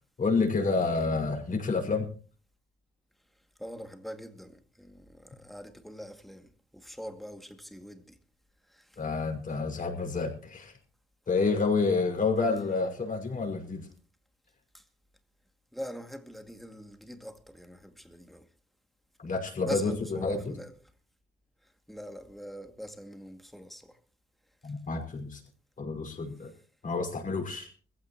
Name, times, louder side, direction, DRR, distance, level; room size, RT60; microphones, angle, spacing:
voice 1, 0.2-2.1 9.0-10.7 11.3-13.9 19.2-20.6 24.6-25.4 25.8-26.5 26.8-27.7, left 4 dB, 40° left, 5.6 m, -29 dB
voice 2, 3.6-8.2 8.7-9.0 14.7-14.8 15.7-18.5 19.6-20.7 21.6-24.0, equal, ahead, 2.2 m, -43 dB
21.5 x 15.5 x 3.0 m
cardioid pair, 90°, 20 cm